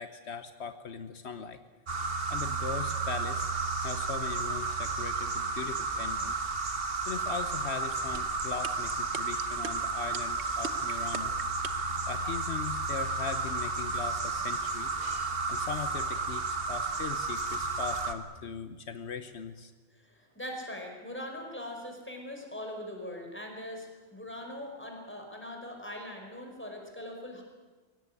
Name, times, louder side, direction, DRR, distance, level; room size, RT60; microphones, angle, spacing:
voice 1, 0.0-1.6 2.3-3.5 3.8-6.4 6.7-11.3 11.8-15.0 15.5-19.7, left 6 dB, 75° left, 10 dB, 1.3 m, -40 dB
sound 1, 1.9-18.1, right 3 dB, 60° right, 1.8 m, -32 dB
sound 2, 8.1-11.9, right 7 dB, 75° right, 1.3 m, -37 dB
voice 2, 19.9-27.4, left 1 dB, 10° left, 1 dB, 5.0 m, -41 dB
23.5 x 17.5 x 9.7 m, 1.3 s
omnidirectional pair, 1.1 m